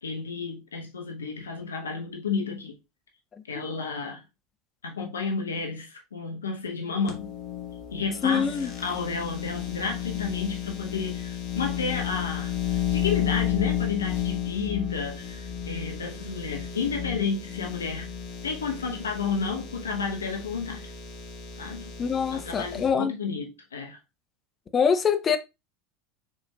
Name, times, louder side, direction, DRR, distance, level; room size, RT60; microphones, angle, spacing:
voice 1, 0.0-2.7 3.5-4.2 4.8-7.3 7.9-18.1 18.4-20.9 21.6-21.9 22.3-24.0, left 5 dB, 80° left, 0.9 m, -31 dB
sound 1, 7.1-22.9, left 9 dB, 50° left, 1.3 m, -32 dB
voice 2, 8.2-8.7 22.0-23.1 24.7-25.4, left 6 dB, 30° left, 0.7 m, -24 dB
4.7 x 4.3 x 2.3 m
figure-of-eight pair, 80°, 0 cm